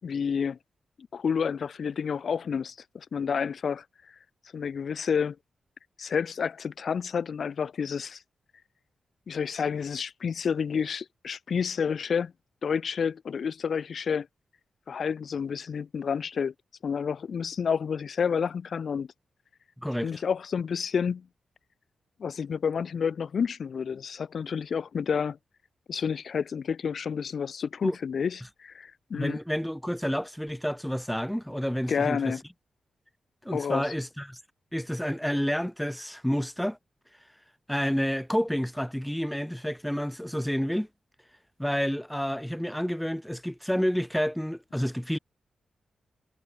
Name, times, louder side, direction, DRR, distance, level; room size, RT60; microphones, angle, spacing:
voice 1, 0.0-0.6 1.1-3.8 4.5-5.4 6.0-8.2 9.3-12.3 12.6-14.3 14.9-16.5 16.8-19.1 20.0-21.3 22.2-25.4 25.9-29.4 31.9-32.4 33.5-33.9, left 6 dB, 50° left, 3.6 m, -29 dB
voice 2, 19.8-20.2 27.8-27.9 29.1-32.3 33.4-34.4 34.7-36.8 37.7-40.9 41.6-45.2, equal, ahead, 3.1 m, -29 dB
wide cardioid pair, 175°, 0 cm